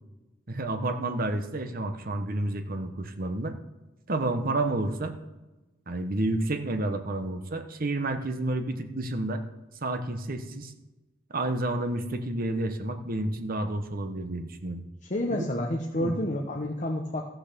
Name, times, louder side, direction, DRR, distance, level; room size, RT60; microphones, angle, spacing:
voice 1, 0.5-3.6 4.1-5.2 5.9-9.4 9.8-10.7 11.3-14.8 15.3-15.5 16.0-16.1, right 2 dB, 50° right, 7 dB, 1.1 m, -30 dB
voice 2, 15.0-17.2, left 1 dB, 40° left, 0 dB, 1.0 m, -29 dB
14.5 x 6.0 x 6.9 m, 1.1 s
head